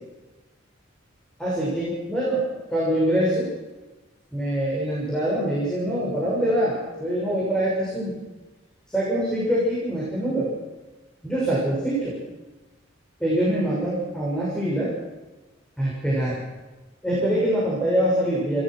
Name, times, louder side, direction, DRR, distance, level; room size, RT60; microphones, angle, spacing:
voice 1, 1.4-2.4 2.7-3.5 4.3-8.1 8.9-10.5 11.2-12.1 13.2-14.9 15.8-16.4 17.0-18.6, right 1 dB, 5° left, -7 dB, 6.7 m, -24 dB
29.0 x 15.0 x 6.3 m, 1.2 s
head